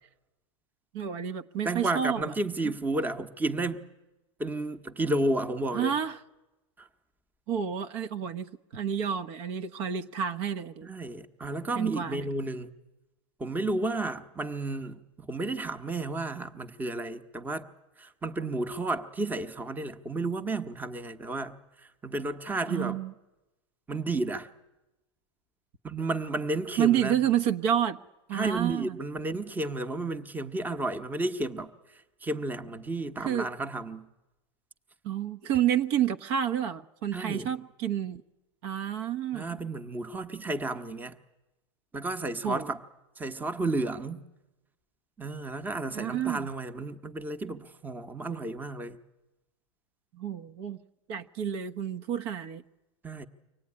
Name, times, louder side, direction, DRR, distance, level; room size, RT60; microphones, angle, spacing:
voice 1, 0.9-2.3 5.7-6.2 7.5-10.9 11.7-12.2 22.7-23.1 26.8-28.0 28.3-29.0 33.2-33.5 35.0-38.2 38.6-39.6 42.4-42.7 45.9-46.5 50.1-50.8 51.1-52.6, right 9 dB, 60° right, 1.1 m, -29 dB
voice 2, 1.6-3.9 4.4-5.9 6.8-6.9 10.8-12.7 13.4-17.7 18.0-23.0 23.9-24.5 25.8-27.2 28.3-31.7 32.2-34.1 37.1-37.5 39.3-41.1 41.9-42.8 43.2-44.2 45.2-49.0 53.0-53.3, right 2 dB, 10° right, 1.1 m, -32 dB
24.5 x 17.5 x 9.8 m
supercardioid pair, 125°, 15 cm